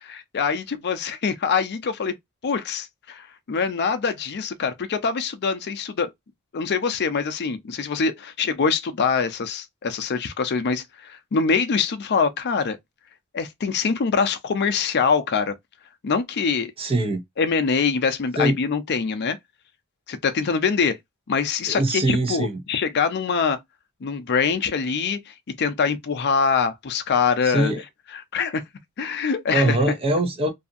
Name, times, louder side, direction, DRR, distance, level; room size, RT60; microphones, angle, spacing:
voice 1, 0.0-2.1 2.4-6.1 6.5-12.8 13.3-15.5 16.0-16.7 17.4-19.4 20.1-21.0 21.3-23.6 24.0-27.7 28.1-28.6 29.0-29.8, left 5 dB, 50° left, 0.5 m, -24 dB
voice 2, 16.8-17.2 18.4-18.6 21.7-22.6 27.4-27.8 29.5-30.5, right 1 dB, 25° right, 0.5 m, -22 dB
2.7 x 2.4 x 2.5 m
head